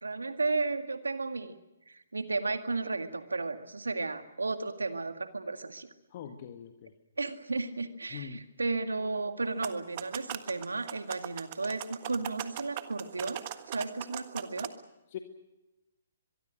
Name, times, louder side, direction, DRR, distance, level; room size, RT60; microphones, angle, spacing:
voice 1, 0.0-1.6 1.9-5.9 7.2-14.7, right 3 dB, 85° right, 8 dB, 2.0 m, -34 dB
voice 2, 6.1-6.9 8.1-8.4 15.1-15.2, left 9 dB, 45° left, 6 dB, 1.7 m, -42 dB
sound 1, 9.4-14.7, right 14 dB, 40° right, 1.5 m, -40 dB
23.5 x 23.0 x 6.3 m, 0.98 s
figure-of-eight pair, 130°, 0 cm